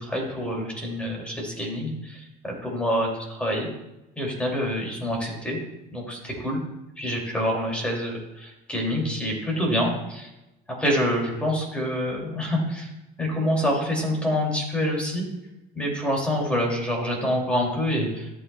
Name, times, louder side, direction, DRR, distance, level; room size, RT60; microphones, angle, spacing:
voice 1, 0.0-3.7 4.2-5.6 5.9-6.6 7.0-10.3 10.8-12.9 13.2-15.3 15.7-18.3, equal, 5° left, -1 dB, 2.5 m, -26 dB
14.5 x 7.6 x 2.3 m, 0.94 s
cardioid pair, 160°, 18 cm